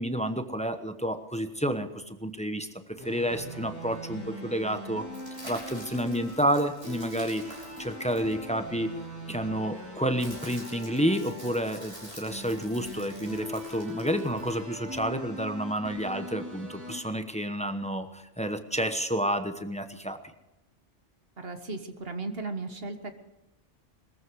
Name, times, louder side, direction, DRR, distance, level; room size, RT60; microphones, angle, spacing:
voice 1, 0.0-2.7 3.0-5.0 5.4-7.4 7.8-8.9 9.3-20.2, equal, 5° left, 8 dB, 0.9 m, -30 dB
sound 1, 3.0-17.0, left 1 dB, 15° right, 4.2 m, -41 dB
sound 2, 5.1-8.9 9.8-15.0, equal, 30° right, 6.8 m, -48 dB
voice 2, 21.4-23.1, right 3 dB, 55° right, 7 dB, 1.7 m, -36 dB
21.5 x 14.5 x 4.7 m, 0.91 s
omnidirectional pair, 1.2 m